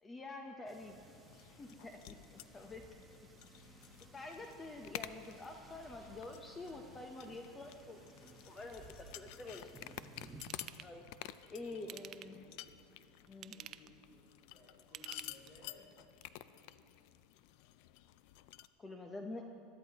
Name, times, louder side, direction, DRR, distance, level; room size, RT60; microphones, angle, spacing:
voice 1, 0.0-1.0 1.6-2.8 4.1-8.0 8.4-9.9 10.8-11.0 11.5-12.4 13.3-13.6 18.8-19.4, left 2 dB, 15° left, 3 dB, 0.7 m, -47 dB
sound 1, 0.7-10.4, right 2 dB, 5° right, 1.1 m, -59 dB
sound 2, 0.8-18.7, left 14 dB, 60° left, 0.4 m, -52 dB
Ratchet pawl / Tools, 10.4-10.9 11.8-12.5 13.3-14.0 14.8-15.7 16.2-16.3, right 12 dB, 35° right, 0.3 m, -50 dB
voice 2, 11.4-12.1 12.3-12.7 13.5-15.9 16.4-16.6, left 2 dB, 35° left, -8 dB, 2.8 m, -62 dB
22.0 x 13.0 x 2.9 m, 2.6 s
supercardioid pair, 145°, 0 cm